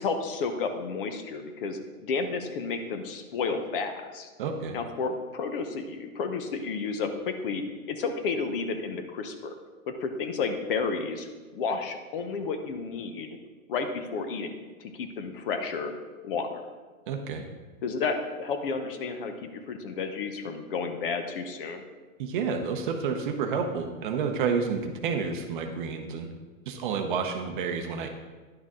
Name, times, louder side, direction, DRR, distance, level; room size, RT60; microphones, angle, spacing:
voice 1, 0.0-4.3 4.7-7.6 7.9-9.6 9.9-11.3 11.5-13.4 13.7-14.5 14.8-15.9 16.2-16.6 17.8-21.9, left 4 dB, 40° left, 7 dB, 0.8 m, -31 dB
voice 2, 4.4-4.8 17.1-17.4 22.2-26.3 26.7-28.1, right 5 dB, 35° right, 5 dB, 0.7 m, -30 dB
10.5 x 6.3 x 3.7 m, 1.3 s
hypercardioid pair, 160°, 42 cm